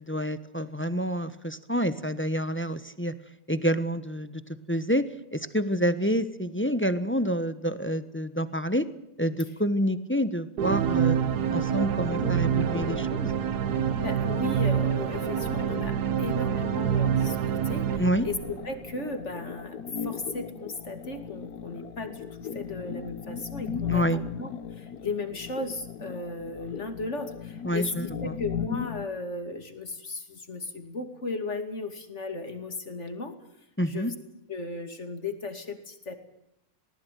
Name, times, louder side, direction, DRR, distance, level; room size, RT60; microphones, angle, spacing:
voice 1, 0.0-3.1 3.5-4.4 4.7-5.0 5.3-8.9 9.2-11.2 11.5-13.3 18.0-18.3 23.9-24.2 27.6-28.4 33.8-34.1, equal, 10° left, 13 dB, 0.9 m, -28 dB
sound 1, 10.6-19.0, right 8 dB, 85° right, 1.7 m, -27 dB
sound 2, 10.7-29.1, left 7 dB, 75° left, 1.6 m, -38 dB
voice 2, 13.8-17.4 17.6-24.5 24.8-33.3 33.9-34.1 34.5-36.1, left 3 dB, 45° left, 8 dB, 2.8 m, -36 dB
20.5 x 19.0 x 9.4 m, 0.81 s
omnidirectional pair, 1.7 m